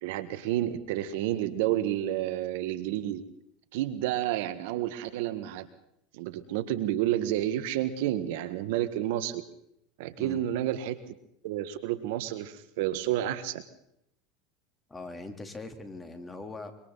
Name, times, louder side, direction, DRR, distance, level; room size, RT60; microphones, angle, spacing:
voice 1, 0.0-3.2 3.7-5.7 6.1-9.4 10.0-11.0 11.4-13.6, right 13 dB, 75° right, 11 dB, 1.8 m, -30 dB
voice 2, 14.9-16.7, left 3 dB, 15° left, 5 dB, 3.6 m, -41 dB
25.5 x 24.5 x 4.2 m, 0.75 s
supercardioid pair, 105°, 0 cm